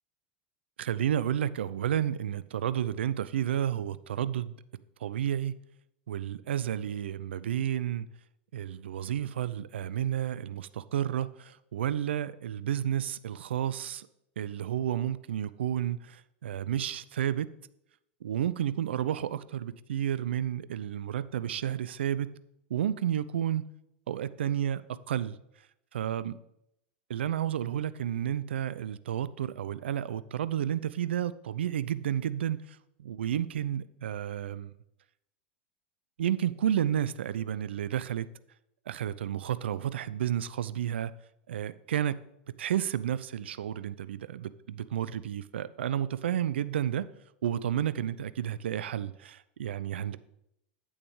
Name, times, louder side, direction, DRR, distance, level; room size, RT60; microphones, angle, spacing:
voice 1, 0.8-4.5 5.0-5.6 6.1-8.1 8.5-14.1 14.4-17.5 18.2-22.3 22.7-23.6 24.1-25.4 25.9-26.4 27.1-32.6 33.0-34.7 36.2-38.3 38.9-41.1 41.5-42.2 42.6-47.0 47.4-50.2, right 10 dB, 75° right, 16 dB, 0.4 m, -31 dB
8.7 x 8.6 x 3.2 m, 0.82 s
hypercardioid pair, 90°, 6 cm